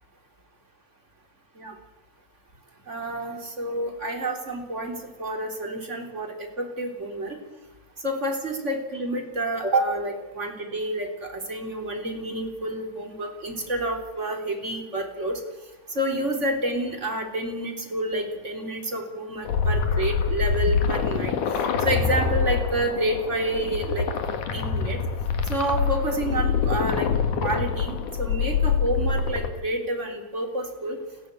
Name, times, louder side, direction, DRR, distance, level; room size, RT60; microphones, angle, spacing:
voice 1, 2.9-7.4 8.0-15.4 15.9-21.4 21.8-24.1 24.5-25.0 25.4-27.1 27.4-31.0, right 1 dB, 25° right, 3 dB, 3.7 m, -29 dB
sound 1, 19.4-29.5, left 5 dB, 90° left, 3.4 m, -25 dB
29.5 x 11.5 x 8.5 m, 1.1 s
omnidirectional pair, 3.4 m